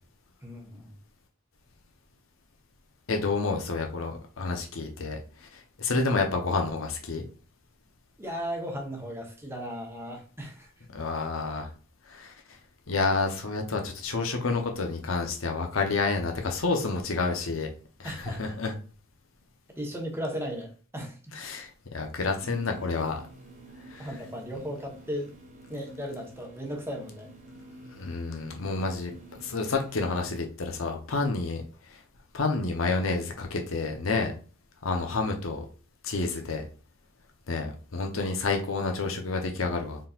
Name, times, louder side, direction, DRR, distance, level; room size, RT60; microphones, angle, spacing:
voice 1, 0.4-0.9 8.2-10.7 18.0-18.4 19.8-21.4 24.0-25.3 25.7-27.3 27.8-28.1, equal, 10° right, 1 dB, 1.1 m, -36 dB
voice 2, 3.1-7.2 10.9-11.7 12.1-12.3 12.9-17.7 18.0-18.7 21.3-23.2 23.9-24.1 28.0-29.1 29.4-31.6 31.9-32.0 32.3-34.3 34.8-35.6 36.0-36.6 37.5-40.0, left 3 dB, 75° left, 3 dB, 0.8 m, -29 dB
sound 1, 22.4-30.4, right 2 dB, 40° right, 0.9 m, -49 dB
4.2 x 3.8 x 2.4 m, 0.38 s
head